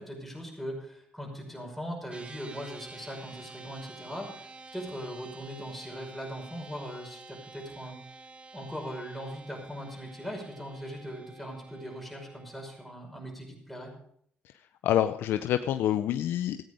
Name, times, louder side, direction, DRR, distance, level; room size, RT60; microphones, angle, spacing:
voice 1, 0.0-8.0 8.5-13.9, equal, 5° left, 0 dB, 5.6 m, -40 dB
sound 1, 2.1-12.9, right 3 dB, 30° right, 1.0 m, -49 dB
voice 2, 14.8-16.6, left 11 dB, 80° left, 9 dB, 0.5 m, -27 dB
14.5 x 9.4 x 5.2 m, 0.65 s
cardioid pair, 75°, 4 cm